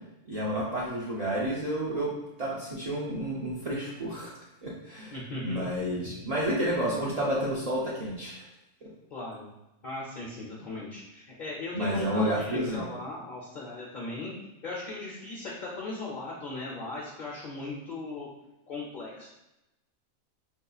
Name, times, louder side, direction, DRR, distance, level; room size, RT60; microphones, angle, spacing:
voice 1, 0.3-2.1 2.4-4.3 4.6-5.1 5.4-8.4 11.7-12.9, equal, 75° right, -6 dB, 0.3 m, -30 dB
voice 2, 5.1-5.6 9.1-9.5 9.8-14.3 14.6-18.3 18.7-19.3, left 2 dB, 55° left, -5 dB, 0.5 m, -38 dB
4.4 x 2.7 x 2.3 m, 0.94 s
omnidirectional pair, 1.4 m